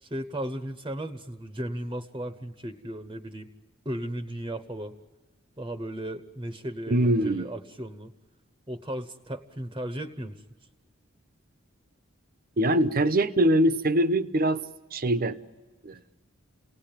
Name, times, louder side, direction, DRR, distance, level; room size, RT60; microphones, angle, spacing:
voice 1, 0.0-3.5 3.8-4.9 5.6-8.1 8.7-10.4, right 1 dB, 20° right, 8 dB, 1.0 m, -35 dB
voice 2, 6.9-7.5 12.6-14.6 14.9-15.4 15.8-16.0, right 1 dB, 45° right, 12 dB, 0.9 m, -23 dB
28.5 x 18.0 x 9.0 m, 1.3 s
head